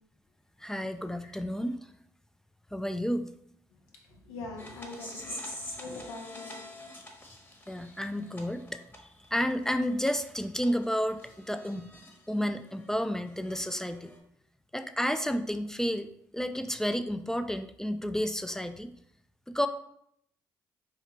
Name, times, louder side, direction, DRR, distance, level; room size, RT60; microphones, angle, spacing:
voice 1, 0.6-1.8 2.7-3.3 7.7-8.8 9.3-11.9 12.3-14.1 14.7-16.1 16.3-18.9 19.5-19.7, equal, 5° left, 0.3 m, -31 dB
voice 2, 3.9-6.7, left 2 dB, 85° left, 0.7 m, -43 dB
sound 1, 4.6-12.2 12.6-14.2, left 1 dB, 25° left, 1.1 m, -46 dB
4.5 x 2.4 x 3.2 m
hypercardioid pair, 45°, 9 cm